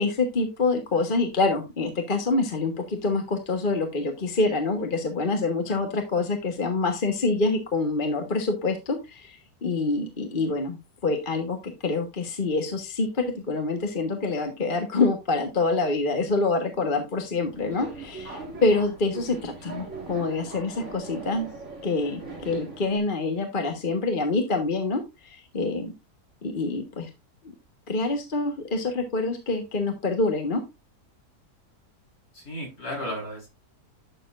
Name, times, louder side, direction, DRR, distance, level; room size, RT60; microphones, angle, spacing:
voice 1, 0.0-10.8 11.0-21.5 21.8-25.9 26.4-27.1 27.9-30.6, left 3 dB, 35° left, 5 dB, 1.4 m, -26 dB
Subway metro underground, 17.3-23.0, right 3 dB, 45° right, 2.7 m, -40 dB
voice 2, 32.3-33.5, equal, 60° left, 0 dB, 5.0 m, -34 dB
11.5 x 6.9 x 2.5 m, 0.24 s
omnidirectional pair, 1.7 m